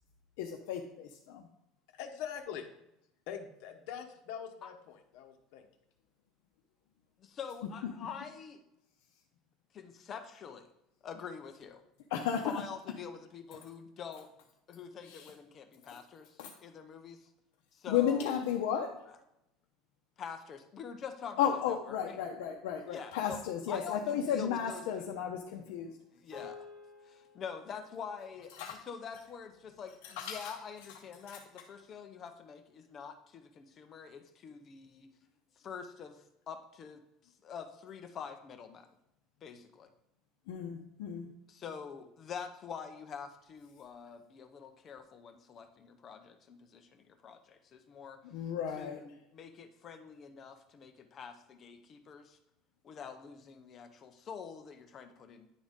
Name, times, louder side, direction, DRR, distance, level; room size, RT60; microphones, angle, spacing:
voice 1, 0.4-1.5 12.1-12.6 15.0-15.3 15.8-16.0 16.4-16.5 17.9-19.0 21.4-26.0 28.5-28.8 30.0-30.5 31.3-31.4 40.5-41.3 48.2-49.0, left 8 dB, 85° left, 1 dB, 0.7 m, -34 dB
voice 2, 1.9-2.7 3.3-5.7, left 8 dB, 70° left, 4 dB, 1.0 m, -43 dB
voice 3, 7.2-8.6 9.7-10.7 11.0-11.8 12.4-14.3 14.7-17.3 17.7-18.4 20.2-21.4 21.7-22.2 22.9-23.4 23.7-24.8 26.1-26.7 27.0-35.1 35.6-37.0 37.4-38.9 39.4-39.9 41.5-48.2 48.8-52.4 52.8-55.5, left 6 dB, 30° left, 8 dB, 0.6 m, -46 dB
sound 1, 26.3-30.8, left 5 dB, 5° left, 2.2 m, -54 dB
10.0 x 3.9 x 3.6 m, 0.84 s
cardioid pair, 155°, 0 cm